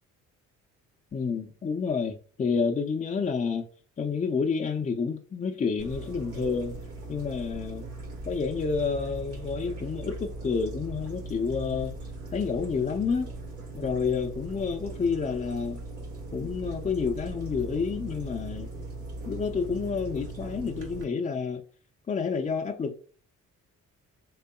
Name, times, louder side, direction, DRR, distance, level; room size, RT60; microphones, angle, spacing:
voice 1, 1.1-3.6 4.0-6.8 7.1-7.9 8.3-12.0 12.3-13.3 13.7-15.8 16.3-18.7 19.3-21.6 22.1-22.9, left 5 dB, 25° left, 0.4 m, -29 dB
sound 1, 5.8-21.0, right 2 dB, 50° right, 1.3 m, -39 dB
3.7 x 3.4 x 2.2 m
cardioid pair, 90°, 30 cm